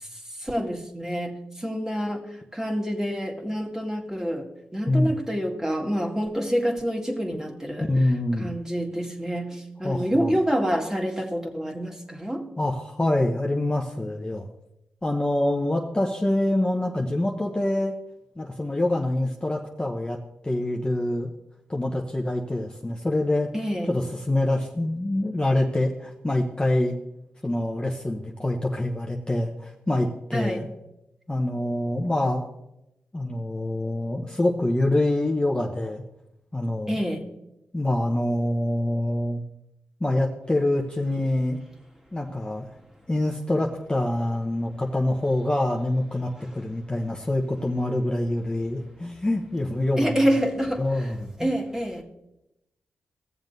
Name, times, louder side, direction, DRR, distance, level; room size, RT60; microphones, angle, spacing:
voice 1, 0.5-1.4 1.6-2.2 2.6-4.4 4.7-7.9 8.4-9.6 9.8-12.4 23.5-23.9 30.3-30.6 36.9-37.2 50.0-50.8 51.4-52.0, equal, 10° right, 1.9 m, -27 dB
voice 2, 7.8-8.5 9.8-10.3 12.6-14.5 15.0-18.0 18.4-20.2 20.4-21.3 21.7-23.5 23.9-27.0 27.4-30.7 31.3-32.5 33.1-36.0 36.5-36.9 37.7-39.4 40.0-41.6 42.1-42.7 43.1-50.1 50.8-51.3, left 1 dB, 20° left, 1.0 m, -25 dB
16.5 x 7.2 x 2.7 m
cardioid pair, 50°, 5 cm